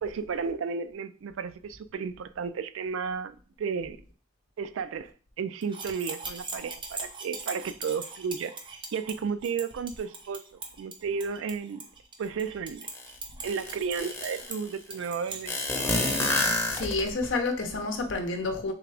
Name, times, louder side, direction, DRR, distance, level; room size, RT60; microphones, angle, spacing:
voice 1, 0.0-4.0 4.6-5.1 5.4-11.9 12.2-12.9 13.4-15.6, right 6 dB, 80° right, 0.3 m, -33 dB
sound 1, 5.6-15.4, right 3 dB, 25° right, 0.6 m, -41 dB
sound 2, 12.9-13.0 13.4-14.6 15.5-17.3, left 2 dB, 10° left, 0.7 m, -28 dB
voice 2, 16.7-18.7, left 3 dB, 70° left, 0.7 m, -29 dB
3.6 x 3.4 x 3.3 m
head